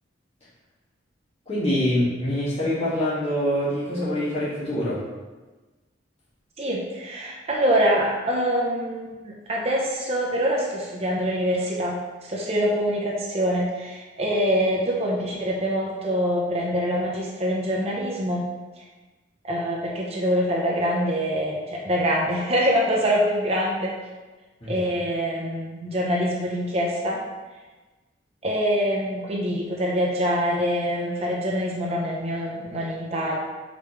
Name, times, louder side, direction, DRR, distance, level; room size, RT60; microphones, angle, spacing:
voice 1, 1.5-5.0 24.6-24.7, equal, 30° left, -11 dB, 2.0 m, -25 dB
voice 2, 6.6-12.0 12.2-18.4 18.8-18.9 19.4-23.9 24.7-27.2 28.4-33.4, equal, 30° right, -3 dB, 0.9 m, -25 dB
6.4 x 5.2 x 3.2 m, 1.2 s
head